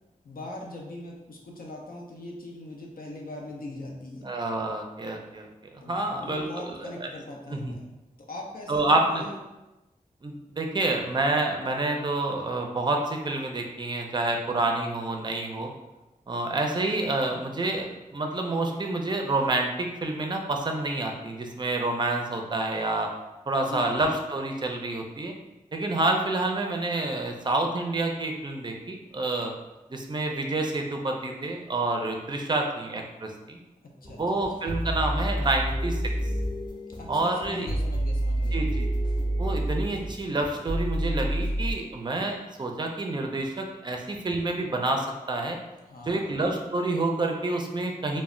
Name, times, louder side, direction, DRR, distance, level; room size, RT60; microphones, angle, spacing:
voice 1, 0.2-4.3 5.8-7.8 8.3-8.8 9.1-9.4 23.6-23.9 33.8-34.4 37.0-38.6 45.9-46.3, left 1 dB, 80° left, -1 dB, 0.5 m, -41 dB
voice 2, 4.2-7.1 7.5-7.7 8.7-9.2 10.2-15.7 16.3-23.1 23.5-25.3 25.7-29.5 29.9-33.6 34.2-36.0 37.1-37.7 38.5-38.9 39.4-45.6 46.1-48.2, right 2 dB, 30° right, 2 dB, 0.4 m, -28 dB
sound 1, 34.0-41.7, right 1 dB, 30° left, 0.5 m, -29 dB
2.1 x 2.1 x 3.6 m, 1.0 s
cardioid pair, 45°, 15 cm